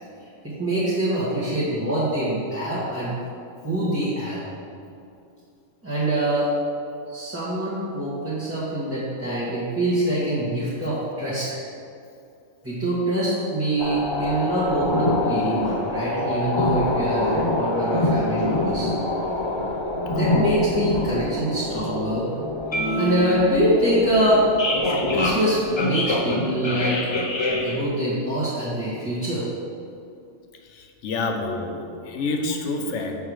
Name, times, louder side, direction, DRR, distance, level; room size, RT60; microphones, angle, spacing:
voice 1, 0.4-3.2 3.6-4.5 5.8-6.5 7.1-11.5 12.6-18.9 20.1-22.3 23.0-24.5 25.1-27.1 27.6-29.5, right 1 dB, 10° right, -11 dB, 1.1 m, -24 dB
sound 1, 13.8-27.9, left 1 dB, 35° left, 0.4 m, -25 dB
voice 2, 31.0-33.2, left 3 dB, 70° left, 4 dB, 1.0 m, -27 dB
6.5 x 3.5 x 6.1 m, 2.5 s
omnidirectional pair, 1.3 m